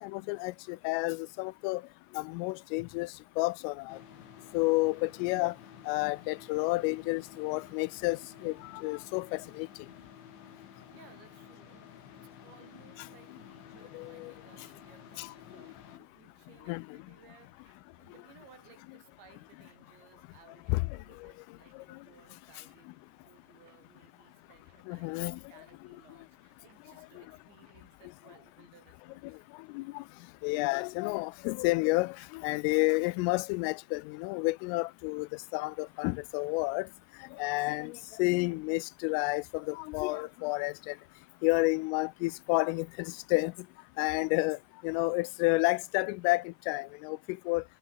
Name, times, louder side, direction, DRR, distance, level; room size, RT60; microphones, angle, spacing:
voice 1, 0.0-1.8 2.1-4.0 4.5-5.5 5.9-9.7 13.9-14.3 15.2-15.3 16.7-16.8 20.7-20.9 24.9-25.4 29.7-30.0 30.4-35.3 35.5-36.9 37.4-41.0 41.4-43.5 44.0-44.6 44.8-47.6, left 24 dB, 85° left, 3.1 m, -30 dB
sound 1, 3.9-16.0, left 8 dB, 65° left, 5.7 m, -52 dB
voice 2, 10.9-29.5 37.7-38.0 41.4-41.7, right 6 dB, 60° right, 6.8 m, -60 dB
sound 2, 14.1-28.0, right 6 dB, 85° right, 8.8 m, -72 dB
omnidirectional pair, 5.8 m